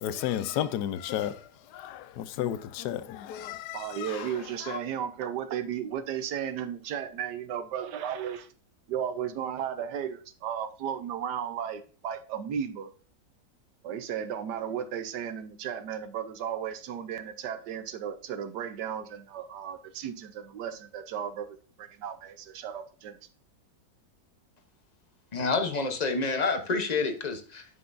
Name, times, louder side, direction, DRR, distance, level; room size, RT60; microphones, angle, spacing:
voice 1, 0.0-4.8, left 11 dB, 70° left, 14 dB, 1.1 m, -33 dB
voice 2, 3.7-8.5 8.9-12.9 13.8-23.2, right 8 dB, 75° right, 9 dB, 1.3 m, -35 dB
voice 3, 25.3-27.7, left 4 dB, 40° left, 6 dB, 0.6 m, -28 dB
9.4 x 5.8 x 2.6 m, 0.40 s
omnidirectional pair, 1.9 m